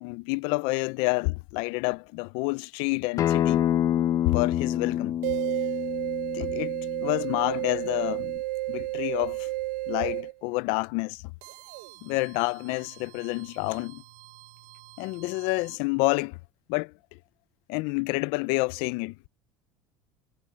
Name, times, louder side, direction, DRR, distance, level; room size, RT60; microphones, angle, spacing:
voice 1, 0.0-3.7 4.3-5.2 6.3-6.7 7.0-8.4 8.7-9.5 9.9-11.2 12.0-14.0 15.0-16.4 16.7-17.2 17.7-19.2, left 26 dB, 65° left, 0.4 m, -28 dB
Acoustic guitar, 3.2-8.4, left 11 dB, 40° left, 0.9 m, -28 dB
sound 1, 5.2-10.3 11.4-15.8, right 18 dB, 80° right, 0.7 m, -33 dB
cardioid pair, 145°, 10 cm